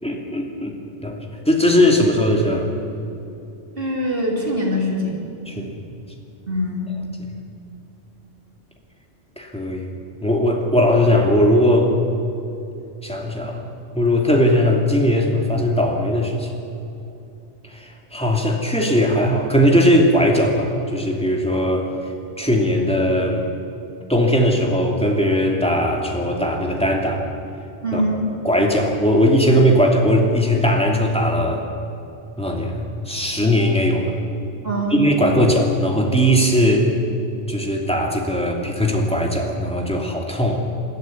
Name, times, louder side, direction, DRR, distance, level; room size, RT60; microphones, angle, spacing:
voice 1, 0.0-0.7 1.0-1.2 1.5-2.7 5.5-5.8 9.4-9.9 10.2-11.9 13.0-16.5 18.1-21.9 22.4-23.5 24.1-27.2 27.9-28.0 28.4-31.6 32.4-34.1 34.9-36.9 37.5-40.6, equal, 5° left, 0 dB, 2.7 m, -19 dB
voice 2, 3.8-5.2 6.5-6.9 27.8-28.2 34.6-35.0, equal, 50° right, -1 dB, 3.6 m, -23 dB
21.0 x 13.5 x 9.7 m, 2.8 s
omnidirectional pair, 1.2 m